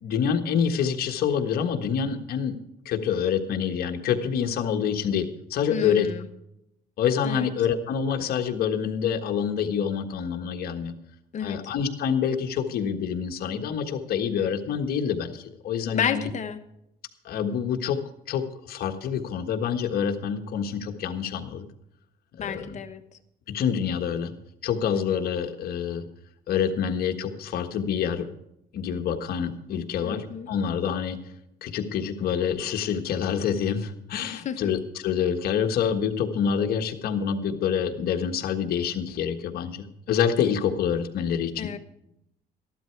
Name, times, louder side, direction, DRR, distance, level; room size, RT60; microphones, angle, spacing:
voice 1, 0.0-2.6 2.8-6.1 7.0-10.9 11.4-16.3 17.2-18.0 18.3-21.6 22.4-22.8 23.5-24.3 24.6-26.0 26.5-28.3 28.7-31.2 31.6-41.7, left 7 dB, 65° left, 5 dB, 1.5 m, -27 dB
voice 2, 5.7-6.3 7.2-7.5 11.3-11.6 15.9-16.6 22.4-23.0 30.0-30.5 34.2-34.7 41.6-41.8, left 7 dB, 45° left, 8 dB, 1.2 m, -31 dB
14.0 x 12.0 x 4.7 m, 0.81 s
cardioid pair, 110°, 17 cm